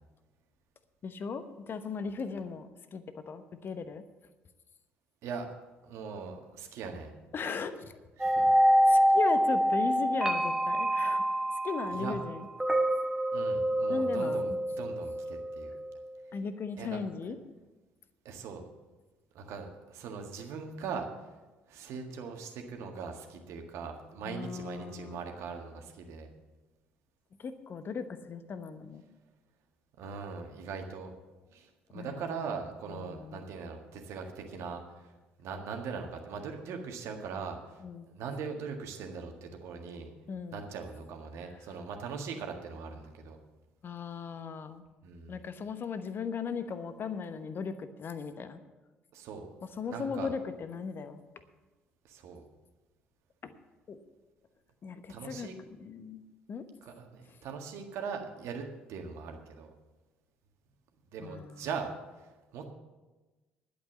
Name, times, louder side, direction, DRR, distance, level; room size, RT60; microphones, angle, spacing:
voice 1, 1.0-4.0 7.3-7.7 8.9-11.2 11.6-12.4 13.9-14.6 16.3-17.4 24.2-25.2 27.4-29.0 31.9-32.3 32.9-33.5 37.8-38.1 40.3-40.6 43.8-44.8 45.3-48.6 49.8-51.2 53.4-53.5 53.9-54.0 54.8-55.5 55.8-56.2 56.5-56.6 61.2-61.7, left 5 dB, 40° left, 10 dB, 1.0 m, -37 dB
voice 2, 5.8-7.1 8.2-8.5 11.9-12.2 13.3-15.7 16.8-17.0 18.2-18.6 19.3-21.3 21.7-26.3 30.0-31.1 31.5-35.1 35.4-40.1 40.5-43.4 45.0-45.4 49.1-49.5 49.8-50.3 52.0-52.4 55.1-55.5 56.8-59.7 61.1-62.7, right 5 dB, 55° right, 4 dB, 1.7 m, -40 dB
sound 1, 8.2-16.2, equal, 10° right, 1.2 m, -27 dB
11.0 x 8.4 x 7.3 m, 1.2 s
figure-of-eight pair, 50°, 6 cm